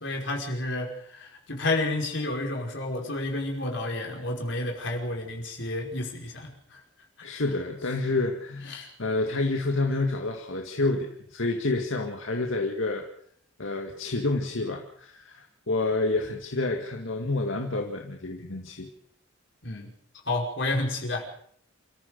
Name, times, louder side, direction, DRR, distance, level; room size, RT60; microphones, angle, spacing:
voice 1, 0.0-6.8 8.7-8.9 19.6-19.9 20.3-21.3, left 2 dB, 65° left, 1 dB, 5.4 m, -30 dB
voice 2, 7.2-13.0 13.6-18.9, left 2 dB, 85° left, 2 dB, 2.1 m, -29 dB
27.5 x 14.5 x 6.8 m, 0.64 s
head